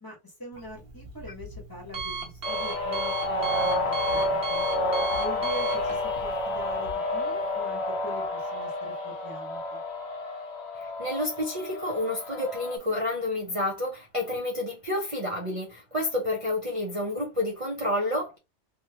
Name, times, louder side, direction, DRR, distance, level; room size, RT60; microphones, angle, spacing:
voice 1, 0.0-4.6 5.2-9.8, left 1 dB, 20° left, 1.2 m, -43 dB
Alarm, 0.5-6.9, right 4 dB, 55° right, 1.2 m, -37 dB
sound 1, 2.4-12.8, left 2 dB, 65° left, 1.0 m, -30 dB
voice 2, 10.7-18.4, left 1 dB, 35° right, 0.7 m, -29 dB
3.7 x 2.3 x 2.8 m
omnidirectional pair, 1.2 m